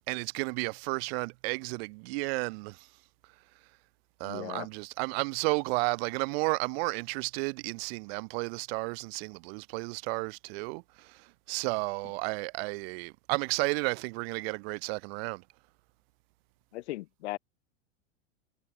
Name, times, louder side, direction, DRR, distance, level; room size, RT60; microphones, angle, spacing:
voice 1, 0.1-2.9 4.2-15.4, right 29 dB, 55° right, 1.5 m, -32 dB
voice 2, 4.2-4.7 16.7-17.4, left 17 dB, 65° left, 3.1 m, -37 dB
hypercardioid pair, 100°, 36 cm